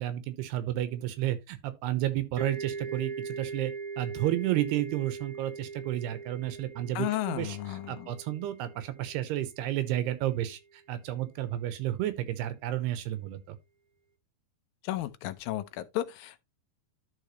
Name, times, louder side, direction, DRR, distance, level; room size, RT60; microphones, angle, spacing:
voice 1, 0.0-7.6 7.9-10.6 10.9-13.6, right 13 dB, 90° right, 3.0 m, -31 dB
sound 1, 2.4-9.9, right 5 dB, 35° right, 4.0 m, -41 dB
voice 2, 7.0-8.2 14.8-16.4, left 14 dB, 75° left, 2.2 m, -33 dB
12.0 x 5.0 x 3.0 m
omnidirectional pair, 4.6 m